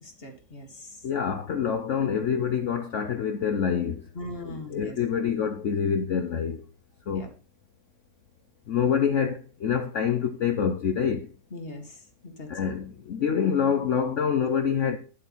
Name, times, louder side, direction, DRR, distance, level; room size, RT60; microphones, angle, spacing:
voice 1, 0.0-1.0 4.1-5.2 7.1-7.3 11.5-12.5, left 1 dB, 35° left, 2.0 m, -40 dB
voice 2, 1.0-4.0 4.4-6.6 7.1-7.3 8.7-11.3 12.5-15.0, left 7 dB, 55° left, 0.9 m, -26 dB
11.0 x 7.9 x 4.1 m
omnidirectional pair, 1.9 m